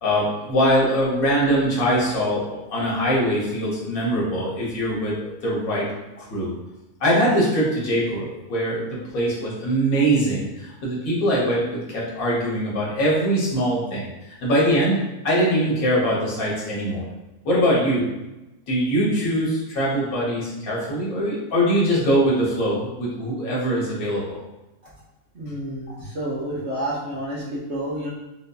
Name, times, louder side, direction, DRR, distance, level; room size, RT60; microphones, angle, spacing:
voice 1, 0.0-5.2 5.4-5.8 6.2-6.5 7.0-14.1 14.4-15.0 15.2-17.0 17.4-18.1 18.7-24.4, equal, 70° left, -5 dB, 1.4 m, -22 dB
voice 2, 25.3-28.1, right 1 dB, 55° right, -6 dB, 1.0 m, -29 dB
3.9 x 2.6 x 2.3 m, 0.99 s
omnidirectional pair, 1.6 m